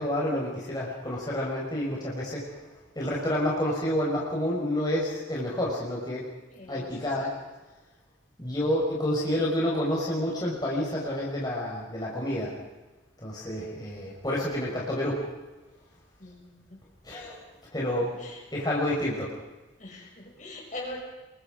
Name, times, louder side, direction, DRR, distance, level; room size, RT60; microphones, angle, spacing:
voice 1, 0.0-2.5 2.9-6.2 6.7-7.3 8.4-12.5 13.2-15.2 17.0-17.4 17.7-18.1 18.5-19.3, left 1 dB, 20° left, -5 dB, 5.0 m, -29 dB
voice 2, 6.5-7.3 16.2-16.8 18.0-18.4 19.8-21.0, left 2 dB, 45° left, 0 dB, 6.3 m, -42 dB
27.5 x 23.0 x 5.1 m, 1.2 s
head